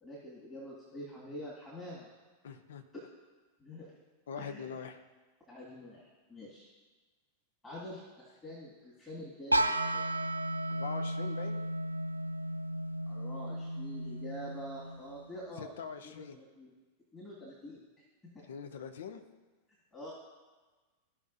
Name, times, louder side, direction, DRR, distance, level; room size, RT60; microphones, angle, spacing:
voice 1, 0.0-2.1 2.9-3.0 3.6-3.9 4.4-4.6 5.5-6.7 7.6-10.1 13.1-15.7 16.0-16.7 17.1-17.8 19.9-20.1, equal, 15° left, -7 dB, 2.1 m, -46 dB
voice 2, 2.4-2.8 4.3-5.0 10.7-11.7 15.6-16.4 18.5-19.2, left 6 dB, 60° left, 7 dB, 0.7 m, -43 dB
sound 1, 9.5-15.3, right 1 dB, 85° right, 0.3 m, -34 dB
15.5 x 5.5 x 2.7 m, 1.3 s
figure-of-eight pair, 90°, 0 cm